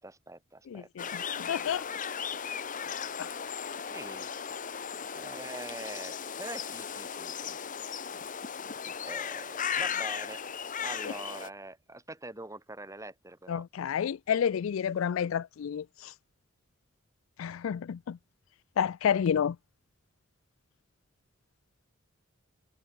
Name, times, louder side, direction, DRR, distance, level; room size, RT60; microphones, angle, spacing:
voice 1, 0.0-1.4 3.9-4.3 5.1-7.6 9.0-10.4 10.8-13.6, right 2 dB, 15° right, 4.1 m, -44 dB
voice 2, 0.7-1.9 3.2-3.3 9.7-9.8 11.0-11.1 13.5-16.1 17.4-18.2 18.8-19.6, left 8 dB, 75° left, 0.4 m, -30 dB
sound 1, 1.0-11.5, left 7 dB, 40° left, 1.0 m, -36 dB
head